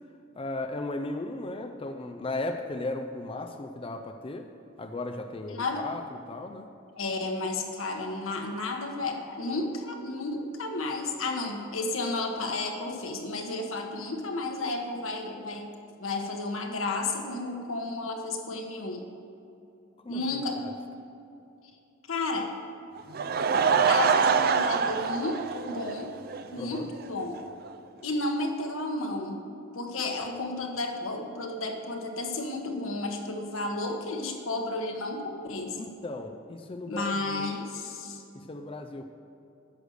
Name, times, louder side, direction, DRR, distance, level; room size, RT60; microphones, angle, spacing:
voice 1, 0.4-4.5 4.8-6.0 6.3-6.7 20.0-20.7 26.6-26.9 35.8-37.5 38.3-39.0, left 2 dB, 25° left, 5 dB, 0.5 m, -36 dB
voice 2, 5.5-5.8 7.0-15.7 16.0-19.0 20.1-20.6 22.1-22.5 23.9-26.1 26.5-27.4 28.0-29.4 29.7-35.8 36.9-38.2, left 2 dB, 85° left, 2 dB, 1.3 m, -32 dB
Laughter / Crowd, 23.0-26.4 26.7-26.8 27.4-27.5 27.7-27.8, right 6 dB, 50° right, 0.4 m, -25 dB
10.0 x 6.5 x 6.5 m, 2.7 s
head